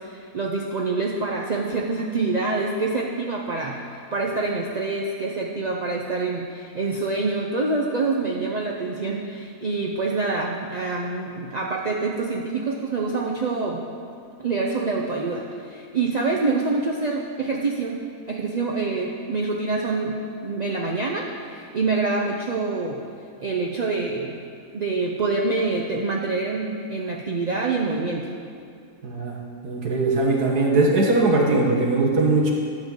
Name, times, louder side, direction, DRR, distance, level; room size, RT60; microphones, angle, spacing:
voice 1, 0.0-13.9 14.4-23.0 23.4-24.4 24.7-28.3, right 3 dB, 55° right, -1 dB, 0.4 m, -26 dB
voice 2, 29.0-29.4 29.6-32.5, right 2 dB, 90° right, -1 dB, 1.9 m, -20 dB
12.5 x 4.4 x 8.0 m, 2.4 s
omnidirectional pair, 1.6 m